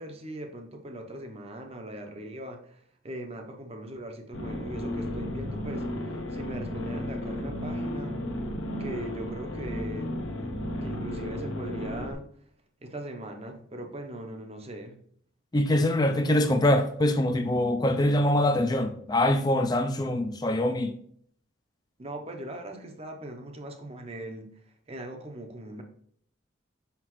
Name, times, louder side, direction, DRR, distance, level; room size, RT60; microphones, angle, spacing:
voice 1, 0.0-8.1 8.8-10.2 10.8-12.2 12.8-15.0 22.0-24.5 24.9-25.8, right 1 dB, 30° right, 0.7 m, -40 dB
sound 1, 4.3-12.1, left 1 dB, 80° left, 1.0 m, -33 dB
voice 2, 15.5-20.9, left 1 dB, 20° left, 0.4 m, -24 dB
5.8 x 5.5 x 3.0 m
head